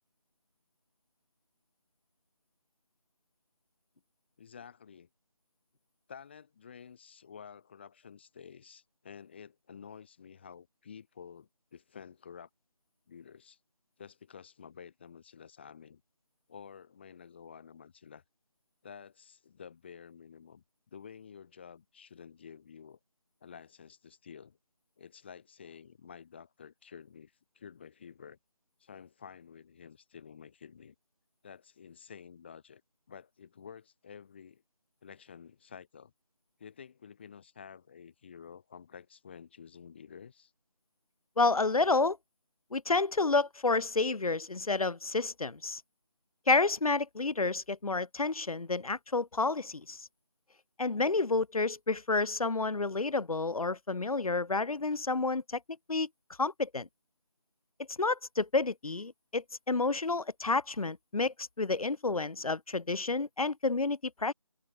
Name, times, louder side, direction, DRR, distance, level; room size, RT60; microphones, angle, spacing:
voice 1, 4.4-5.1 6.1-12.5 13.1-13.6 14.0-16.0 16.5-18.2 18.8-20.6 20.9-23.0 23.4-24.6 25.0-28.4 28.8-30.9 31.4-32.8 33.1-34.6 35.0-36.1 36.6-40.5, left 7 dB, 20° left, 3.3 m, -51 dB
voice 2, 41.4-42.2 42.7-45.8 46.5-50.1 50.8-55.6 55.9-56.1 56.4-56.9 57.9-64.3, left 3 dB, 85° left, 0.9 m, -30 dB
open air
figure-of-eight pair, 170°, 18 cm